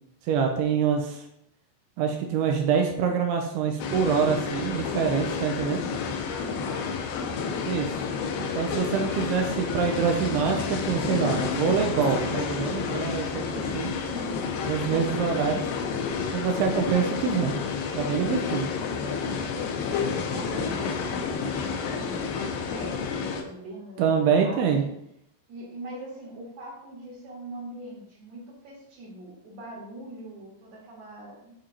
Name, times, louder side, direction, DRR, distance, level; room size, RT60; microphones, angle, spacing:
voice 1, 0.3-1.2 2.0-5.8 7.7-7.9 8.4-13.9 14.6-15.6 16.3-17.5 18.0-18.7 24.0-24.8, right 6 dB, 85° right, 3 dB, 2.4 m, -25 dB
sound 1, 3.8-23.4, left 5 dB, 80° left, 2.6 m, -30 dB
voice 2, 6.2-7.9 8.3-8.6 13.9-14.4 16.6-17.2 17.8-18.6 19.0-24.9 25.5-31.5, right 1 dB, 60° right, -5 dB, 1.9 m, -42 dB
8.7 x 2.9 x 3.8 m, 0.76 s
omnidirectional pair, 5.1 m